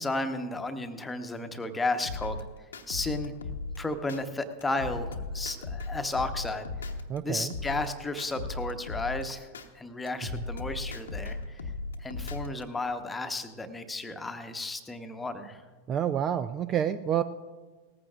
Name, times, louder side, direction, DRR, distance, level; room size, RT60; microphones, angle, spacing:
voice 1, 0.0-2.4 2.9-3.3 3.8-6.9 7.2-9.5 9.7-11.6 12.0-15.6, left 2 dB, 10° left, 8 dB, 1.0 m, -33 dB
sound 1, 2.0-4.2 4.6-7.2 7.5-9.7 10.1-12.6, left 3 dB, 70° left, 0.9 m, -37 dB
voice 2, 7.1-7.5 10.3-10.4 15.9-17.2, right 9 dB, 30° right, 13 dB, 0.4 m, -28 dB
18.5 x 14.5 x 2.4 m, 1.3 s
figure-of-eight pair, 90°, 0 cm